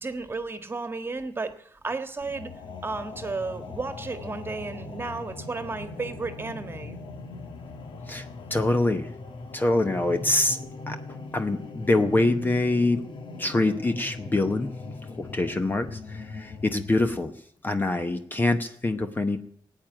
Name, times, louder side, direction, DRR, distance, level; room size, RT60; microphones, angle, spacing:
voice 1, 0.0-2.5 2.8-7.0 10.9-11.1, right 3 dB, 25° right, 9 dB, 1.6 m, -33 dB
sound 1, 2.2-17.2, left 3 dB, 75° left, 1.4 m, -40 dB
voice 2, 8.1-9.1 9.5-10.6 10.9-11.0 11.3-13.0 13.4-14.7 15.2-17.3 17.6-19.4, left 2 dB, 20° left, 8 dB, 0.9 m, -25 dB
17.0 x 9.2 x 8.8 m, 0.63 s
wide cardioid pair, 120°, 9 cm